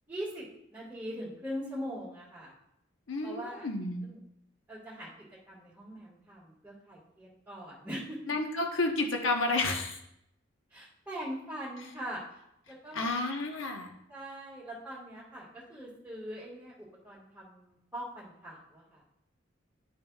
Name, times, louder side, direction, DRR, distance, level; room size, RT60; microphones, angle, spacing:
voice 1, 0.1-0.4 0.7-2.5 3.2-3.7 4.0-4.2 4.7-5.1 5.5-8.3 10.7-12.4 12.7-13.1 14.1-16.7 17.0-19.0, equal, 10° right, -10 dB, 1.6 m, -41 dB
voice 2, 3.1-4.1 8.3-10.0 12.9-13.9, left 2 dB, 75° left, 2 dB, 1.0 m, -31 dB
11.0 x 5.5 x 2.3 m, 0.78 s
head